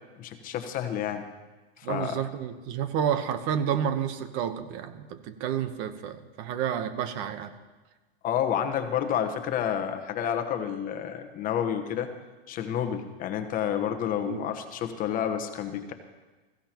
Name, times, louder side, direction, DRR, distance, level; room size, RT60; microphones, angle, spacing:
voice 1, 0.2-1.2 1.8-2.2 8.2-12.1 12.5-15.9, left 9 dB, 30° left, 6 dB, 1.1 m, -29 dB
voice 2, 1.8-7.5 14.3-14.5, right 9 dB, 45° right, 10 dB, 1.1 m, -30 dB
21.5 x 15.5 x 3.0 m, 1.2 s
supercardioid pair, 140°, 29 cm